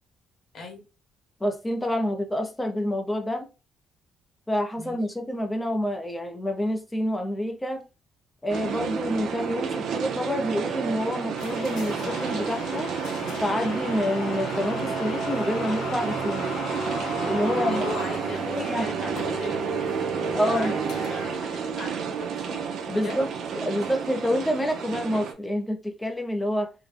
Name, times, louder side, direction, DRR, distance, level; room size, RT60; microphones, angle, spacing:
voice 1, 1.4-3.5 4.5-7.9 8.4-13.0 13.4-16.5 17.2-17.9 18.5-18.9 20.3-20.7 22.9-23.3 23.6-26.7, left 1 dB, 10° left, 0.5 m, -28 dB
sound 1, 8.5-25.3, right 6 dB, 60° right, 0.6 m, -30 dB
sound 2, 11.4-21.4, left 7 dB, 85° left, 0.4 m, -38 dB
voice 2, 17.5-19.7 20.2-23.2, left 2 dB, 50° left, 1.1 m, -38 dB
3.6 x 2.1 x 3.2 m
cardioid pair, 165°, 0 cm